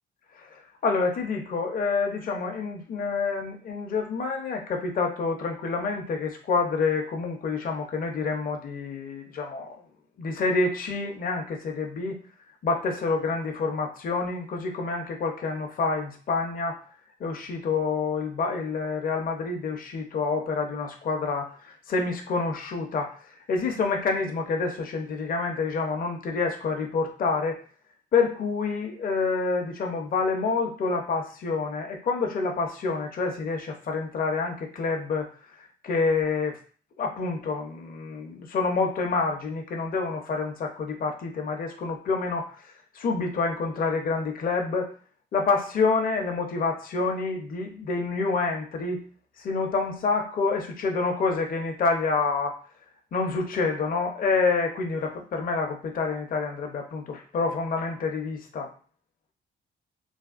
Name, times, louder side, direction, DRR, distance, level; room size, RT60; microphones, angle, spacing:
voice 1, 0.8-9.8 10.2-12.2 12.6-16.8 17.2-23.2 23.5-27.6 28.1-35.3 35.6-36.6 37.0-42.5 42.9-44.9 45.3-49.0 49.4-52.6 53.1-58.7, left 4 dB, 45° left, 2 dB, 0.6 m, -27 dB
3.4 x 2.2 x 2.4 m, 0.41 s
cardioid pair, 90°, 20 cm